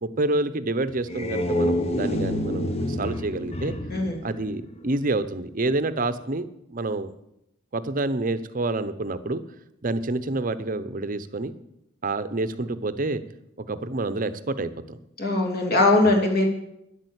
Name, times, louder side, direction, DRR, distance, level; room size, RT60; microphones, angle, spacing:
voice 1, 0.0-3.7 4.2-7.1 7.7-9.4 9.8-11.5 12.0-13.2 13.6-15.0, right 2 dB, 40° right, 13 dB, 0.7 m, -28 dB
sound 1, 0.9-5.1, left 1 dB, 30° left, 1.0 m, -28 dB
voice 2, 15.2-16.4, left 2 dB, 50° left, 1 dB, 2.7 m, -20 dB
10.5 x 8.7 x 8.1 m, 0.81 s
head